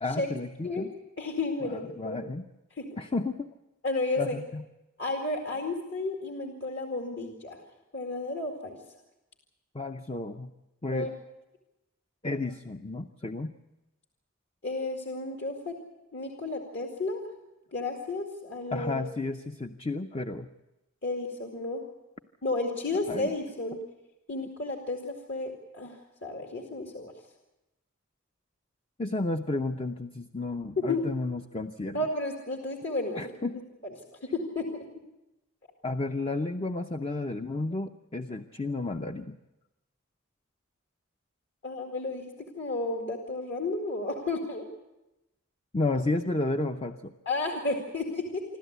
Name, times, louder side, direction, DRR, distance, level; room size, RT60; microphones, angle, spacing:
voice 1, 0.0-0.9 1.7-2.5 3.0-3.5 4.2-4.6 9.7-10.5 10.8-11.1 12.2-13.5 18.7-20.5 23.1-23.3 29.0-32.0 33.2-33.6 35.8-39.4 45.7-47.1, left 2 dB, 25° left, 6 dB, 0.6 m, -32 dB
voice 2, 1.2-2.2 2.8-2.9 3.8-4.4 5.0-7.6 7.9-8.8 10.9-11.1 14.6-15.8 16.1-17.2 17.7-19.0 21.0-21.8 22.4-23.8 24.3-27.1 30.8-31.0 31.9-33.3 33.8-33.9 34.2-34.8 41.6-42.2 42.5-44.7 47.3-48.4, left 2 dB, 55° left, 1 dB, 2.2 m, -32 dB
27.0 x 13.0 x 8.1 m, 0.99 s
head